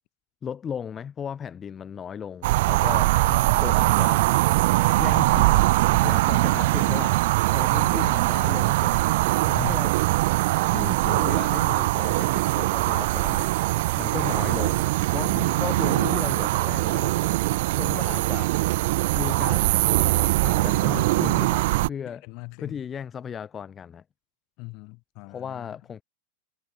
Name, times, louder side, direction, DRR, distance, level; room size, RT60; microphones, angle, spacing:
voice 1, 0.4-3.1 3.6-4.3 5.0-9.0 9.5-9.9 10.6-13.5 14.0-17.2 17.7-18.5 19.1-22.2 22.6-24.0 25.3-26.0, left 7 dB, 20° left, 4.2 m, -36 dB
sound 1, 2.4-21.9, right 19 dB, 50° right, 1.6 m, -22 dB
voice 2, 3.3-3.9 9.5-9.8 15.3-15.6 21.1-21.6 22.1-22.8 24.6-25.8, left 29 dB, 45° left, 4.1 m, -40 dB
figure-of-eight pair, 90°, 0 cm